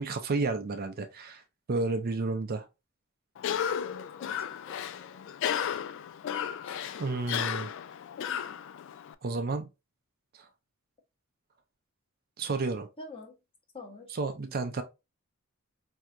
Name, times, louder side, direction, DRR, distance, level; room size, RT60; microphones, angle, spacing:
voice 1, 0.0-1.4 1.7-2.6 7.0-7.7 9.2-9.7 10.4-10.5 12.4-12.9 14.1-14.8, right 3 dB, 45° right, 0.5 m, -31 dB
Cough, 3.4-9.1, left 8 dB, 60° left, 0.3 m, -34 dB
voice 2, 3.8-4.4 4.7-5.3 6.7-6.8 13.0-13.3 13.7-14.1, left 2 dB, 25° left, 0.8 m, -47 dB
4.6 x 2.7 x 2.4 m
head